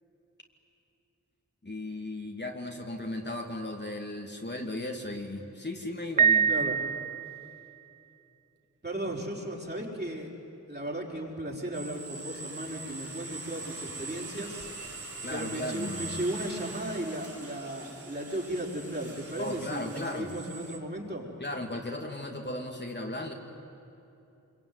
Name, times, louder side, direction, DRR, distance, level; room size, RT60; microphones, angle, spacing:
voice 1, 1.6-6.5 15.2-16.1 19.4-20.3 21.4-23.3, left 1 dB, 35° left, 1 dB, 2.6 m, -36 dB
Piano, 6.2-7.6, right 7 dB, 75° right, 0.6 m, -25 dB
voice 2, 8.8-10.3 10.7-21.3, right 1 dB, 30° right, -2 dB, 5.4 m, -36 dB
sound 1, 11.7-20.8, right 3 dB, 45° right, 3.7 m, -42 dB
25.5 x 23.0 x 9.7 m, 2.7 s
cardioid pair, 45°, 32 cm